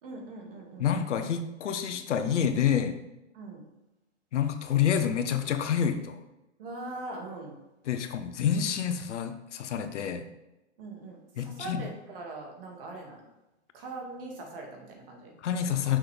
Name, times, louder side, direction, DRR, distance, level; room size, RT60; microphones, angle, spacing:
voice 1, 0.0-0.9 3.3-3.6 6.6-7.5 10.8-13.2 13.7-15.3, right 2 dB, 50° right, 0 dB, 2.2 m, -41 dB
voice 2, 0.8-3.0 4.3-6.2 7.9-10.2 11.4-11.8 15.4-16.0, left 8 dB, 75° left, 9 dB, 0.9 m, -28 dB
6.1 x 6.1 x 3.4 m, 0.98 s
hypercardioid pair, 150°, 36 cm